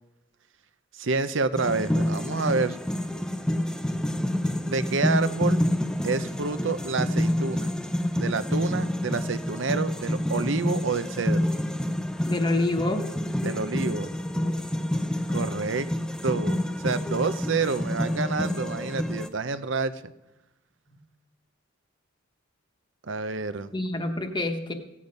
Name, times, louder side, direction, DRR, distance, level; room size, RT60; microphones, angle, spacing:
voice 1, 0.9-2.8 4.7-5.7 6.0-7.7 8.2-11.5 13.4-14.5 15.3-15.9 16.2-20.1 23.0-23.7, right 4 dB, 65° right, 13 dB, 0.7 m, -28 dB
sound 1, 1.6-19.3, left 1 dB, 5° left, 0.5 m, -28 dB
voice 2, 12.3-13.0 23.7-24.7, left 2 dB, 20° left, 5 dB, 1.1 m, -26 dB
16.0 x 8.6 x 5.3 m, 0.94 s
head